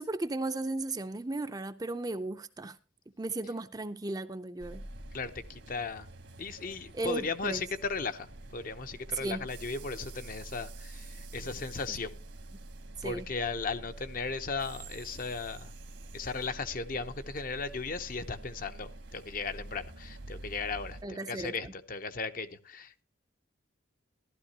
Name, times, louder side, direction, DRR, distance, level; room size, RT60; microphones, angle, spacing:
voice 1, 0.0-2.8 3.2-4.8 6.9-7.6 9.1-9.4 13.0-13.3 21.0-21.7, right 2 dB, 20° right, 0.5 m, -35 dB
sound 1, 4.6-21.0, right 2 dB, 70° right, 1.4 m, -47 dB
voice 2, 5.1-6.1 6.4-12.2 13.0-15.7 16.1-23.0, left 4 dB, 45° left, 0.7 m, -36 dB
14.5 x 12.0 x 2.8 m
head